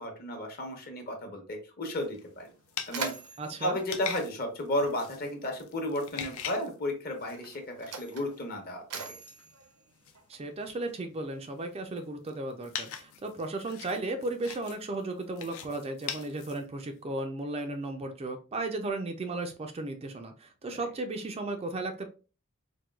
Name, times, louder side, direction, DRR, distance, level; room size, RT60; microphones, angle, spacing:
voice 1, 0.0-2.5 2.9-3.1 3.6-9.2, left 1 dB, 45° left, 2 dB, 0.9 m, -33 dB
Mechanisms, 1.9-2.0 2.4-5.1 6.1-6.3 7.1-10.7, right 4 dB, 80° right, 0.7 m, -42 dB
sound 1, 2.0-7.6 8.0-8.7 9.0-17.0, left 8 dB, 65° left, 0.5 m, -43 dB
voice 2, 3.4-3.8 10.3-22.1, right 2 dB, 25° right, 5 dB, 0.4 m, -35 dB
4.3 x 2.2 x 2.3 m, 0.35 s
head